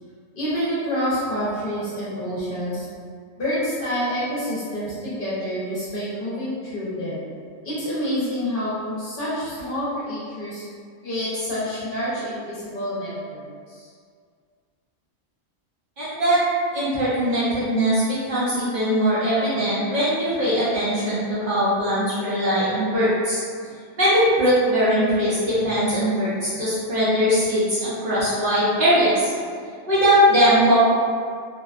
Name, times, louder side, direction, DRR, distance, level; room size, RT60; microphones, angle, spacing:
voice 1, 0.4-2.9 3.4-7.2 7.6-10.6 11.0-13.4 13.7-13.9, equal, 50° left, -10 dB, 0.8 m, -27 dB
voice 2, 16.0-16.4 16.7-23.4 24.0-29.3 29.9-30.8, equal, 55° right, -10 dB, 0.7 m, -20 dB
2.6 x 2.1 x 2.4 m, 2.1 s
omnidirectional pair, 1.3 m